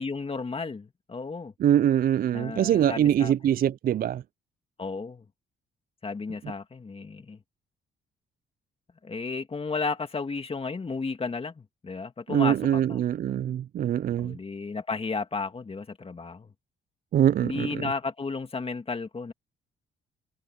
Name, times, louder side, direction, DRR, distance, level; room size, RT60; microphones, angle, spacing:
voice 1, 0.0-1.5 2.3-3.6 4.8-5.2 6.0-7.4 9.0-13.0 14.2-16.5 17.4-19.3, left 4 dB, 30° left, 2.8 m, -33 dB
voice 2, 1.6-4.2 12.3-14.4 17.1-17.8, right 10 dB, 45° right, 0.4 m, -23 dB
cardioid pair, 90°, 20 cm